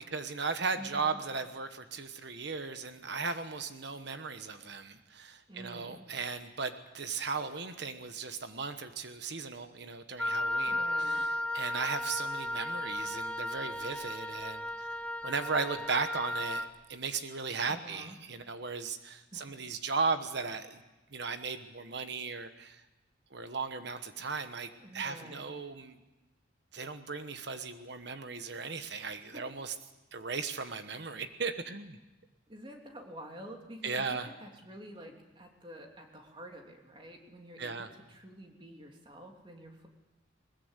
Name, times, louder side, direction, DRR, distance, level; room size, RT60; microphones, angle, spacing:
voice 1, 0.0-11.3 11.5-14.9 15.2-20.8 21.1-22.8 23.3-26.0 26.7-29.7 30.1-32.0 33.8-34.3 37.6-37.9, right 4 dB, 60° right, 9 dB, 1.2 m, -36 dB
voice 2, 0.8-1.2 5.5-6.1 10.7-11.3 17.7-18.2 19.3-19.7 24.8-25.4 28.9-29.4 32.5-39.9, right 1 dB, 25° right, 2 dB, 3.1 m, -49 dB
Wind instrument woodwind instrument, 10.2-16.7, left 1 dB, 5° left, 0.7 m, -34 dB
21.0 x 21.0 x 8.2 m, 1.1 s
head